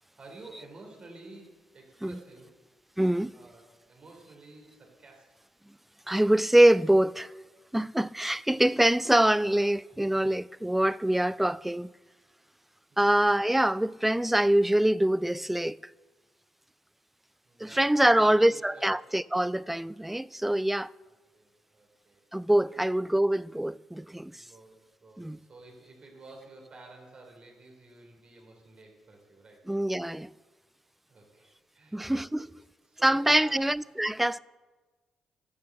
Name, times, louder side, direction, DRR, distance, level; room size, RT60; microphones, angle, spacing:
voice 1, 0.0-2.5 2.9-3.0 3.3-5.4 12.9-13.4 17.4-19.1 21.0-22.3 22.7-22.8 24.2-29.7 31.1-32.1 32.4-32.5 32.9-33.7, right 2 dB, 50° right, 3.8 m, -51 dB
voice 2, 3.0-3.4 6.1-7.3 7.7-11.9 13.0-15.8 17.6-20.9 22.3-24.4 25.2-25.4 29.7-30.3 31.9-32.5 33.0-34.4, right 1 dB, 5° right, 0.3 m, -24 dB
12.5 x 6.7 x 6.8 m
supercardioid pair, 50°, 2 cm